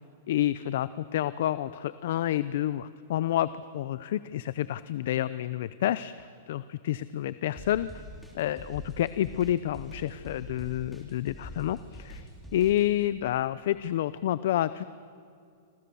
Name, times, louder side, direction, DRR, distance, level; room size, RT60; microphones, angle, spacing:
voice 1, 0.3-7.9 8.3-12.2 12.5-14.8, left 12 dB, 60° left, 15 dB, 0.7 m, -29 dB
sound 1, 7.6-12.9, equal, ahead, 3.8 m, -44 dB
29.0 x 26.5 x 7.1 m, 2.4 s
supercardioid pair, 165°, 0 cm